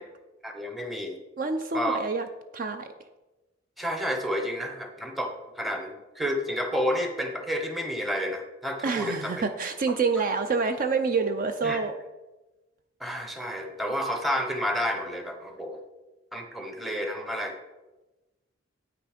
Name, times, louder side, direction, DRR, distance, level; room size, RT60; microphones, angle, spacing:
voice 1, 0.4-1.2 1.7-2.0 3.8-9.3 11.6-11.8 13.0-15.8 16.3-17.6, equal, ahead, 4 dB, 0.9 m, -30 dB
voice 2, 1.4-2.3 2.5-2.9 8.8-11.9, right 4 dB, 40° right, 8 dB, 0.5 m, -27 dB
8.8 x 5.9 x 5.1 m, 1.1 s
head